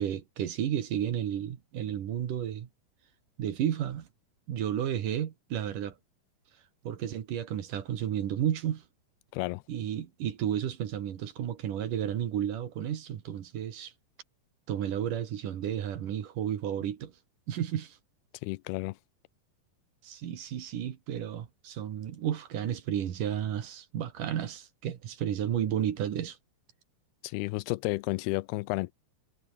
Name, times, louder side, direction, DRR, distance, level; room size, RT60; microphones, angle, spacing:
voice 1, 0.0-2.7 3.4-4.1 4.5-6.0 6.8-8.8 9.7-13.9 14.7-17.1 17.5-18.0 20.0-26.4, right 10 dB, 60° right, 3.1 m, -32 dB
voice 2, 18.4-19.0 27.2-28.9, left 21 dB, 85° left, 2.6 m, -32 dB
omnidirectional pair, 4.5 m